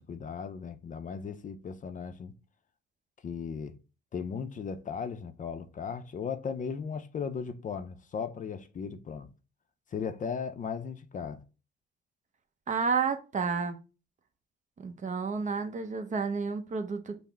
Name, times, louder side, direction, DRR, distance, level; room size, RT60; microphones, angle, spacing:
voice 1, 0.0-2.3 3.2-3.7 4.1-9.3 9.9-11.4, left 6 dB, 40° left, 0.5 m, -37 dB
voice 2, 12.7-13.8 14.8-17.2, right 5 dB, 40° right, 0.7 m, -31 dB
5.5 x 2.0 x 4.5 m
cardioid pair, 90°, 20 cm